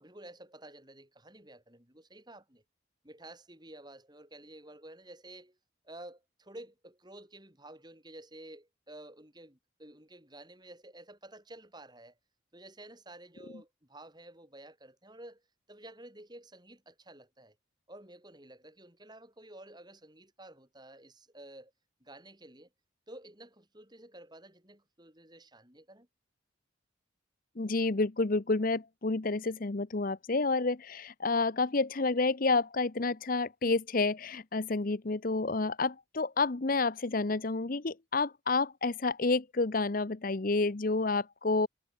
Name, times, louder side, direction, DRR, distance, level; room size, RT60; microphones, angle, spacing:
voice 1, 0.0-2.6 3.0-5.6 5.8-12.2 12.5-15.4 15.7-17.6 17.9-21.7 22.0-22.7 23.1-26.1, right 1 dB, 20° right, 5.8 m, -51 dB
voice 2, 27.6-41.7, left 3 dB, 45° left, 0.8 m, -29 dB
head